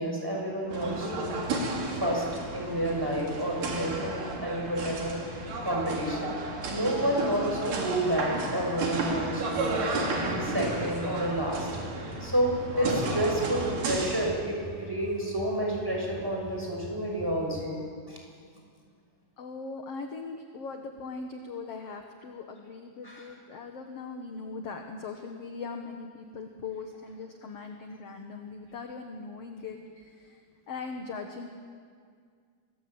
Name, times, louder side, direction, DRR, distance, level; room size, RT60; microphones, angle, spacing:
voice 1, 0.0-1.4 2.0-2.2 2.5-11.7 12.2-17.8 18.1-18.2 23.0-23.2, right 1 dB, 5° right, -1 dB, 6.2 m, -30 dB
sound 1, 0.7-14.3, right 2 dB, 70° right, 4.6 m, -33 dB
sound 2, 9.0-17.7, left 2 dB, 80° left, 4.7 m, -45 dB
voice 2, 19.4-30.4 30.7-31.5, left 4 dB, 55° left, 4 dB, 2.1 m, -40 dB
26.5 x 20.5 x 8.9 m, 2.1 s
omnidirectional pair, 3.9 m